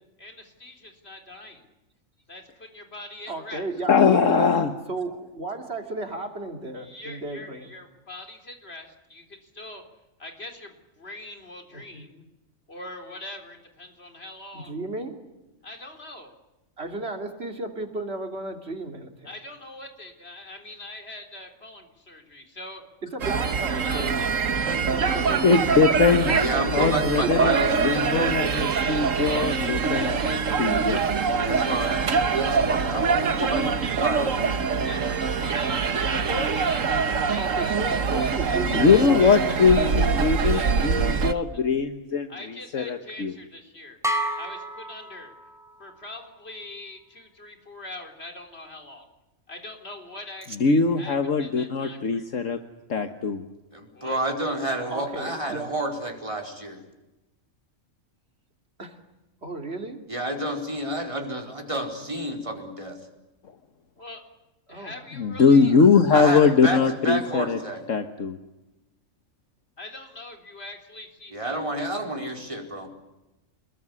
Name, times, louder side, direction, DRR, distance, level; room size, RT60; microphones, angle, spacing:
voice 1, 0.2-1.7 2.3-3.7 6.8-9.8 10.2-12.2 12.7-14.8 15.6-16.4 19.2-22.9 23.7-24.3 28.5-29.6 29.9-30.4 30.7-31.1 34.8-36.2 36.6-36.8 37.2-39.4 39.7-39.9 40.4-41.5 42.3-44.0 44.4-45.3 45.8-49.1 49.5-52.3 53.9-54.2 64.0-64.3 64.7-65.7 69.8-71.6, left 2 dB, 50° left, 5 dB, 4.2 m, -42 dB
voice 2, 3.3-4.5 4.9-7.7 11.7-12.0 14.5-15.2 16.8-19.4 23.0-24.4 24.9-25.8 26.1-27.5 36.0-36.6 37.3-39.4 39.8-40.1 50.5-50.6 54.9-55.9 58.8-59.0 59.4-60.0 64.7-65.9 66.6-66.7, right 2 dB, 50° right, 5 dB, 3.2 m, -34 dB
voice 3, 3.9-4.7 25.4-26.3 26.7-31.0 38.7-42.3 42.7-43.3 50.6-52.6 52.9-53.4 65.2-67.6 67.9-68.4, left 5 dB, 70° left, 7 dB, 1.7 m, -21 dB
sound 1, 23.2-41.3, right 5 dB, 75° right, 1.7 m, -24 dB
voice 4, 26.3-28.4 31.4-34.9 53.7-56.8 60.1-63.0 66.1-66.8 67.0-67.8 71.3-72.9, right 1 dB, 25° right, 2 dB, 4.6 m, -30 dB
sound 2, 44.0-45.8, right 1 dB, ahead, 3.9 m, -30 dB
28.0 x 21.0 x 9.7 m, 1.0 s
omnidirectional pair, 1.4 m